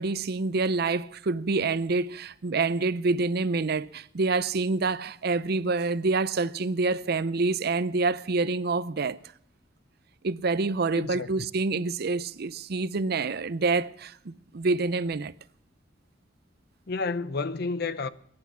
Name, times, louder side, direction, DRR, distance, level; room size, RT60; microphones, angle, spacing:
voice 1, 0.0-9.2 10.2-15.3, right 3 dB, 55° right, 0.6 m, -27 dB
voice 2, 10.9-11.5 16.9-18.1, left 4 dB, 55° left, 0.7 m, -31 dB
21.5 x 10.5 x 5.7 m
head